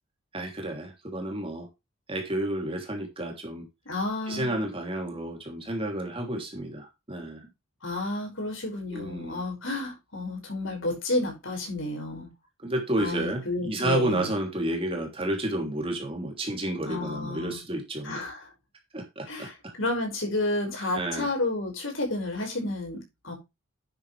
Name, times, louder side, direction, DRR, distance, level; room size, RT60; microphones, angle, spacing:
voice 1, 0.3-1.7 2.1-3.7 4.3-7.4 8.9-9.4 12.6-18.2 18.9-19.7 20.9-21.3, right 1 dB, 25° right, 2 dB, 3.1 m, -31 dB
voice 2, 3.9-4.5 7.8-12.3 13.0-14.3 16.9-17.6 18.0-18.5 19.3-19.5 19.8-23.3, left 2 dB, 65° left, 2 dB, 5.5 m, -31 dB
10.5 x 8.7 x 3.4 m, 0.23 s
head